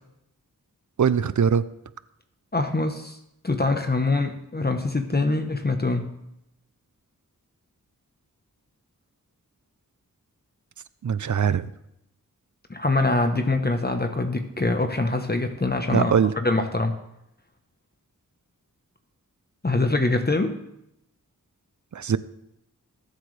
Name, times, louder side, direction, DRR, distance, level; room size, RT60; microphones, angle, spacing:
voice 1, 1.0-1.6 11.0-11.6 15.9-16.3 21.9-22.2, right 7 dB, 60° right, 16 dB, 0.6 m, -21 dB
voice 2, 2.5-3.2 3.4-6.0 12.7-17.0 19.6-20.6, left 2 dB, 30° left, 5 dB, 1.1 m, -24 dB
20.0 x 8.2 x 3.4 m, 0.82 s
cardioid pair, 50°, 33 cm